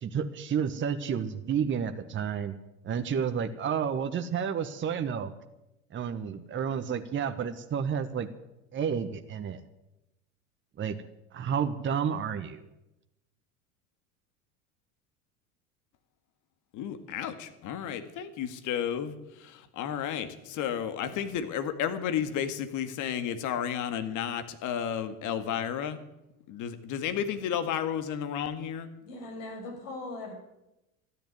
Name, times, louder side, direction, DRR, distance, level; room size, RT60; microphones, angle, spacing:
voice 1, 0.0-2.5 2.8-5.3 5.9-8.3 8.7-9.6 10.8-11.0 11.3-12.6, right 7 dB, 30° right, 8 dB, 1.3 m, -30 dB
voice 2, 16.7-19.1 19.4-26.0 26.5-28.9, left 9 dB, 45° left, 9 dB, 2.0 m, -32 dB
voice 3, 29.0-30.3, left 2 dB, 65° left, 1 dB, 7.1 m, -40 dB
13.5 x 10.5 x 9.4 m, 0.93 s
hypercardioid pair, 85°, 41 cm